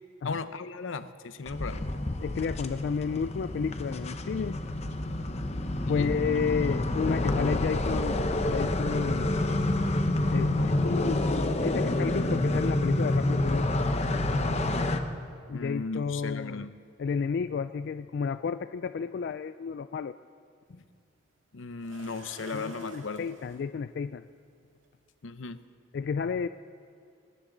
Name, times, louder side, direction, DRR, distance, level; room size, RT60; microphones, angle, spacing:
voice 1, 0.2-1.9 5.9-6.2 15.5-16.7 20.7-20.8 21.5-23.3 25.2-25.6, left 4 dB, 85° left, 12 dB, 0.7 m, -36 dB
sound 1, 1.5-15.0, left 1 dB, 35° left, 0.8 m, -28 dB
voice 2, 2.2-4.7 5.9-9.5 10.3-13.8 15.5-16.7 17.0-20.2 22.5-24.3 25.9-26.5, left 5 dB, 55° left, 12 dB, 0.3 m, -31 dB
sound 2, 20.7-20.8 21.8-23.6 24.8-24.9 25.5-25.6, right 3 dB, 85° right, 1.9 m, -49 dB
20.5 x 17.0 x 3.9 m, 2.3 s
head